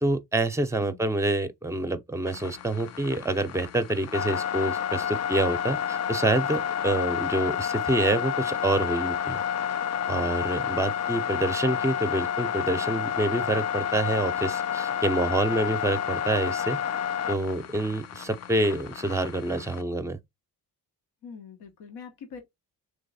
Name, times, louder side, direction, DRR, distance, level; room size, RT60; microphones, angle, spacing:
voice 1, 0.0-9.4 10.1-16.8 17.3-20.2, right 2 dB, 5° right, 0.6 m, -27 dB
sound 1, 2.3-19.8, left 9 dB, 45° left, 0.4 m, -30 dB
voice 2, 21.2-22.4, left 6 dB, 90° left, 1.2 m, -43 dB
3.3 x 3.1 x 4.1 m
cardioid pair, 90°, 39 cm